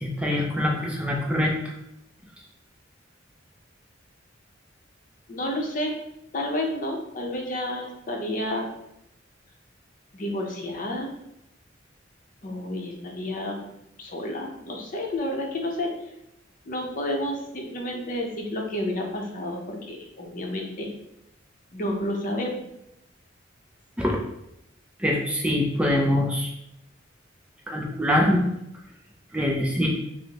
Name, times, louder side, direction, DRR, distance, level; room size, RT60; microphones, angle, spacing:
voice 1, 0.0-1.7 24.0-24.2 25.0-26.5 27.7-28.4 29.3-29.9, left 1 dB, 5° right, -1 dB, 0.4 m, -24 dB
voice 2, 5.3-6.0 6.3-8.7 10.1-11.1 12.4-13.7 14.0-15.9 16.7-20.9 21.7-22.6, left 1 dB, 45° left, 1 dB, 0.7 m, -30 dB
6.0 x 2.0 x 2.9 m, 0.82 s
head